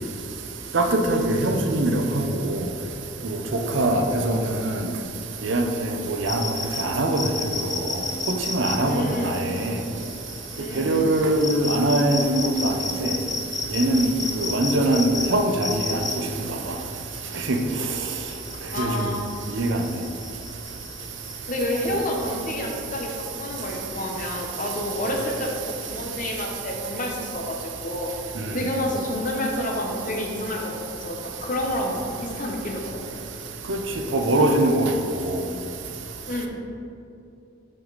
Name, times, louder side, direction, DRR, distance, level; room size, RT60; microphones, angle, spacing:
voice 1, 0.7-2.6 3.2-3.4 3.7-4.7 5.4-6.4 6.8-7.2 8.5-9.7 10.8-12.7 13.0-13.1 13.7-14.1 14.4-16.0 17.5-17.6 18.8-18.9 19.6-19.8 33.7-33.8 34.1-34.9 35.2-35.4, right 1 dB, 70° right, 4 dB, 0.7 m, -22 dB
sound 1, 6.3-26.2, left 4 dB, 20° left, 0.4 m, -34 dB
voice 2, 8.9-9.4 10.6-11.1 18.7-19.2 21.5-28.1 28.5-33.2 36.3-36.5, left 1 dB, 40° left, 1 dB, 0.9 m, -29 dB
7.5 x 5.1 x 4.0 m, 2.7 s
head